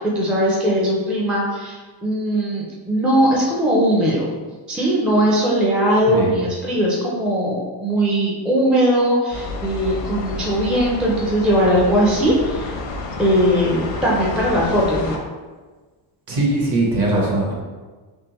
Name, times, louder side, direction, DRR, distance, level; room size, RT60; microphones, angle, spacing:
voice 1, 0.1-4.3 4.7-12.7 13.2-15.2, equal, ahead, -5 dB, 0.4 m, -19 dB
voice 2, 6.1-6.4 16.3-17.6, right 2 dB, 50° right, -3 dB, 1.2 m, -20 dB
sound 1, 9.3-15.2, left 2 dB, 90° left, 0.8 m, -30 dB
3.5 x 3.2 x 2.9 m, 1.3 s
cardioid pair, 140°, 47 cm